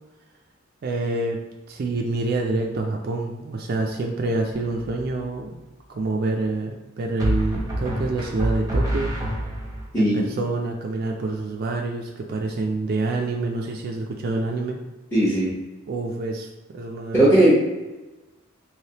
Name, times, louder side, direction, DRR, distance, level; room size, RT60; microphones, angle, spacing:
voice 1, 0.8-1.4 1.7-5.6 5.9-9.1 10.0-14.8 15.9-17.5, right 2 dB, 50° right, 2 dB, 0.3 m, -27 dB
sound 1, 4.5-5.0 7.2-9.9, right 1 dB, 20° right, 0.7 m, -26 dB
voice 2, 9.9-10.2 15.1-15.5 17.1-17.5, right 1 dB, 10° left, -11 dB, 0.8 m, -17 dB
3.2 x 3.0 x 2.8 m, 1.1 s
head